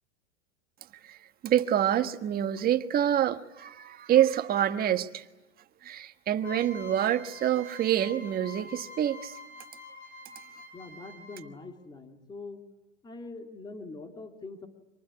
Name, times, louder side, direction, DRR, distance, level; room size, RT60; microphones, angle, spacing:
voice 1, 1.4-5.2 5.8-9.3, right 11 dB, 25° right, 8 dB, 1.4 m, -26 dB
sound 1, 6.4-11.7, left 3 dB, 75° left, 7.1 m, -47 dB
voice 2, 10.7-12.6 13.0-14.7, left 3 dB, 15° left, 5 dB, 2.6 m, -43 dB
26.5 x 19.5 x 9.7 m, 1.2 s
hypercardioid pair, 125°, 34 cm